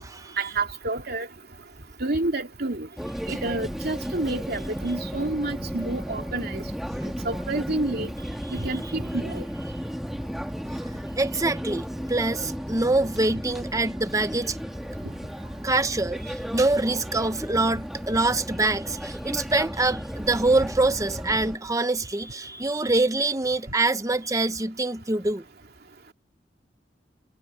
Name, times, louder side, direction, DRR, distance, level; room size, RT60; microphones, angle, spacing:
voice 1, 0.4-1.3 2.0-2.9 3.3-6.6 7.2-8.1 8.5-9.4, right 2 dB, 60° right, 2.6 m, -29 dB
sound 1, 3.0-21.6, equal, ahead, 2.8 m, -34 dB
voice 2, 11.2-14.6 15.6-25.4, right 2 dB, 20° right, 1.1 m, -25 dB
head